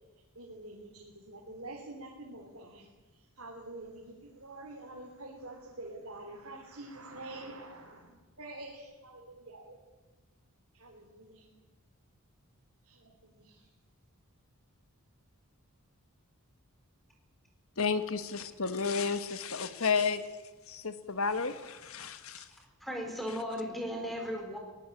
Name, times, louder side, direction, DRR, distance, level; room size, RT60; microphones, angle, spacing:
voice 1, 0.4-2.9 3.1-9.8 10.7-11.5 12.8-13.7, right 2 dB, 70° right, 0 dB, 3.6 m, -47 dB
voice 2, 17.8-20.2 20.7-22.5, left 5 dB, 70° left, 11 dB, 1.5 m, -32 dB
voice 3, 22.8-24.6, equal, ahead, 2 dB, 4.3 m, -36 dB
21.5 x 19.0 x 8.7 m, 1.2 s
head